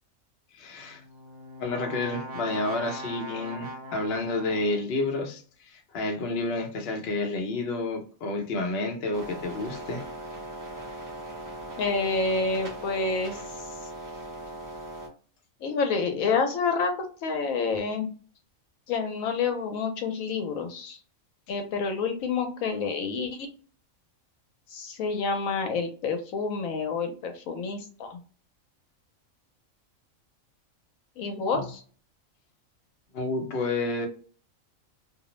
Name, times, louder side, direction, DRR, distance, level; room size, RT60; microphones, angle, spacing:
voice 1, 0.5-1.0 1.6-10.0 31.5-31.7 33.1-34.1, left 2 dB, 55° left, 3 dB, 0.8 m, -30 dB
Brass instrument, 0.8-5.0, right 1 dB, 60° right, 0.9 m, -40 dB
sound 1, 9.1-15.1, right 1 dB, 25° right, 0.4 m, -39 dB
voice 2, 11.8-13.4 15.6-16.9 17.2-18.1 18.9-21.0 21.5-23.5 24.7-28.2 31.2-31.8, left 4 dB, 80° left, 5 dB, 1.0 m, -28 dB
2.5 x 2.0 x 3.0 m, 0.40 s
omnidirectional pair, 1.4 m